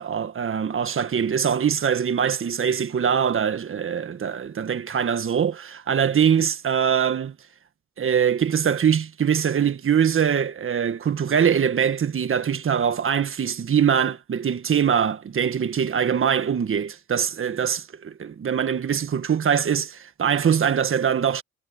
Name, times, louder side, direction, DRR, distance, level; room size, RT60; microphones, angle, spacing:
voice 1, 0.0-7.3 8.0-21.4, right 8 dB, 45° right, 1.6 m, -23 dB
cardioid pair, 90°, 30 cm